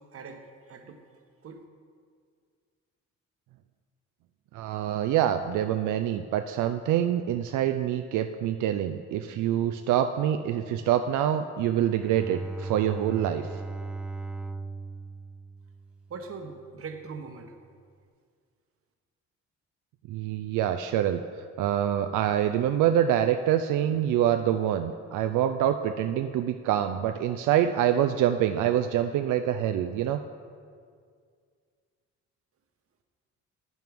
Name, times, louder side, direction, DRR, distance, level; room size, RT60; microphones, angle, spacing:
voice 1, 0.1-1.0 1.4-1.6 16.1-17.6, right 4 dB, 50° right, 6 dB, 1.0 m, -41 dB
voice 2, 4.5-13.6 20.1-30.2, right 10 dB, 80° right, 8 dB, 0.4 m, -26 dB
Bowed string instrument, 11.9-16.5, right 3 dB, 5° right, 0.3 m, -38 dB
10.5 x 9.3 x 3.5 m, 2.1 s
cardioid pair, 90°, 30 cm